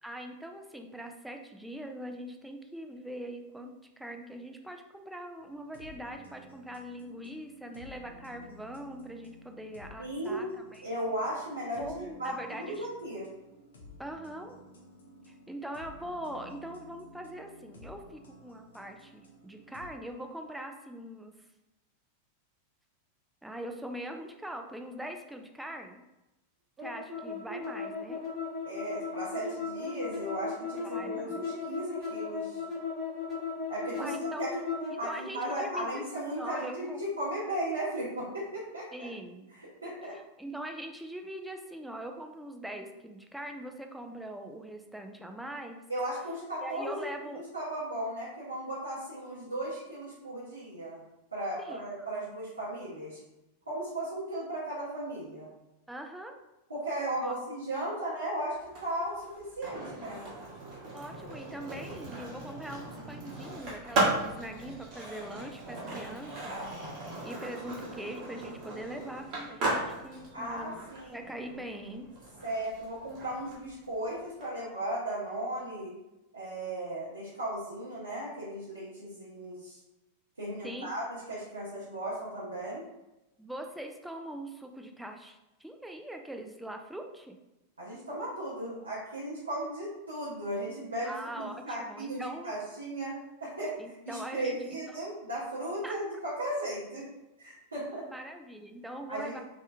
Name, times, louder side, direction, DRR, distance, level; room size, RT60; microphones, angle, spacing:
voice 1, 0.0-10.9 11.8-12.9 14.0-14.6 15.3-21.3 23.4-26.0 26.8-28.2 30.8-31.4 33.9-34.5 34.9-37.1 38.9-39.5 40.1-45.8 46.6-47.4 51.6-52.1 55.9-56.3 57.2-57.4 60.9-66.6 67.2-70.8 71.1-72.1 80.6-80.9 83.4-87.4 91.0-92.5 93.8-95.0 95.8-96.0 98.0-99.4, right 1 dB, 5° right, 4 dB, 0.4 m, -42 dB
sound 1, 5.4-19.9, left 1 dB, 70° left, 0.6 m, -53 dB
voice 2, 10.0-10.4 10.8-13.3 28.6-32.6 33.7-34.1 34.4-34.7 35.0-39.1 39.6-40.1 45.9-51.0 51.3-53.2 53.7-55.5 56.7-60.2 70.3-71.1 72.4-75.9 76.3-79.8 80.4-82.8 87.8-93.1 93.4-93.7 94.1-97.1 97.4-98.0 99.1-99.4, right 1 dB, 80° right, -9 dB, 0.8 m, -36 dB
sound 2, 26.8-35.0, left 4 dB, 20° right, 0.9 m, -36 dB
Skateboard, 58.6-74.5, right 2 dB, 40° right, 1.1 m, -37 dB
3.2 x 2.9 x 2.2 m, 0.97 s
figure-of-eight pair, 90°, 0 cm